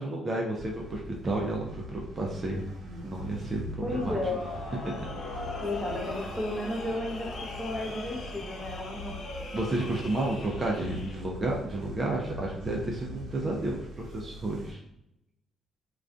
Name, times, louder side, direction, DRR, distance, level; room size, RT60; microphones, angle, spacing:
voice 1, 0.0-2.7 3.0-4.2 4.8-5.0 9.5-14.8, right 2 dB, 35° right, -2 dB, 0.5 m, -31 dB
sound 1, 0.5-14.7, left 1 dB, 85° right, 0.7 m, -43 dB
voice 2, 3.8-4.4 5.6-9.2, left 1 dB, 5° left, -2 dB, 0.7 m, -33 dB
sound 2, 3.9-11.1, left 2 dB, 60° left, 0.4 m, -40 dB
2.5 x 2.3 x 2.3 m, 0.81 s
cardioid pair, 90°, 0 cm